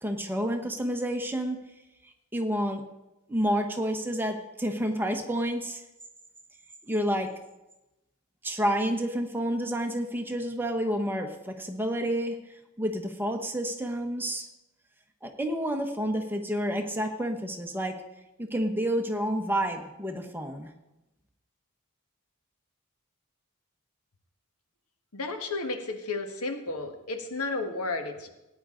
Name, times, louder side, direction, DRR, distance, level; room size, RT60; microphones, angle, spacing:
voice 1, 0.0-1.6 2.3-2.8 3.3-5.8 6.9-7.3 8.4-12.4 12.8-14.5 15.2-18.0 18.4-20.7, equal, 10° right, 5 dB, 1.0 m, -29 dB
voice 2, 25.1-28.3, left 3 dB, 90° left, 6 dB, 1.5 m, -33 dB
17.5 x 9.5 x 3.8 m, 0.96 s
head